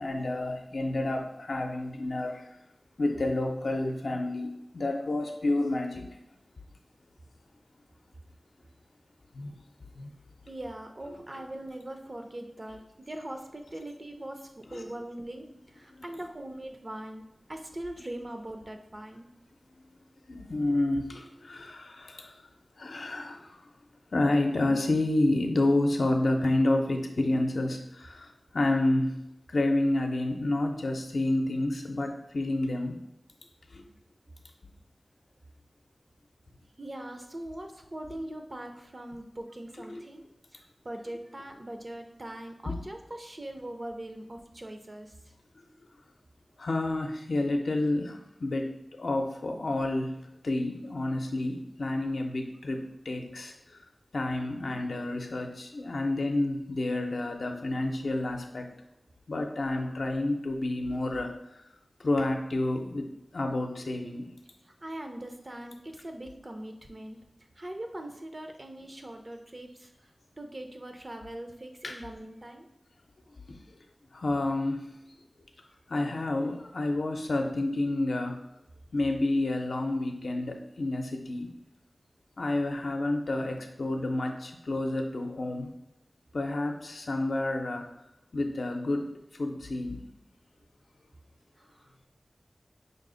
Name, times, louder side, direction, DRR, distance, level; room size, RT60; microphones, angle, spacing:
voice 1, 0.0-2.5 3.0-6.1 9.3-9.5 9.9-10.1 11.0-11.2 14.7-14.8 15.9-16.2 20.3-22.4 22.8-23.6 24.1-29.2 29.5-33.0 33.7-33.8 39.7-40.0 42.6-42.8 45.6-45.7 46.6-48.7 49.0-50.2 50.4-53.8 54.1-58.7 59.3-61.4 62.0-64.3 71.8-72.1 74.1-74.9 75.9-78.4 78.9-81.5 82.4-85.7 86.3-87.9 88.3-90.0, left 2 dB, 80° left, 3 dB, 0.5 m, -29 dB
voice 2, 10.5-19.3 36.8-40.2 40.5-45.1 64.6-67.2 67.6-70.1 70.4-72.7 91.6-92.1, right 1 dB, 40° right, 5 dB, 0.6 m, -41 dB
5.2 x 2.0 x 3.8 m, 0.87 s
wide cardioid pair, 50°, 0 cm